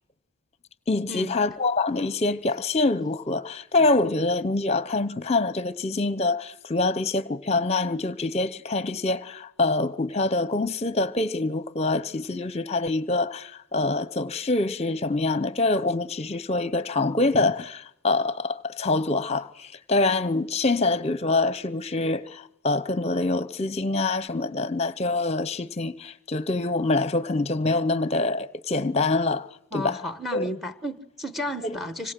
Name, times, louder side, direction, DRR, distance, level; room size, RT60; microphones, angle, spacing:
voice 1, 0.9-29.5 29.7-30.0 30.3-30.4 31.6-31.8, left 2 dB, 30° left, 0.9 m, -25 dB
voice 2, 29.7-32.1, left 1 dB, ahead, 1.2 m, -33 dB
26.0 x 25.5 x 7.7 m
head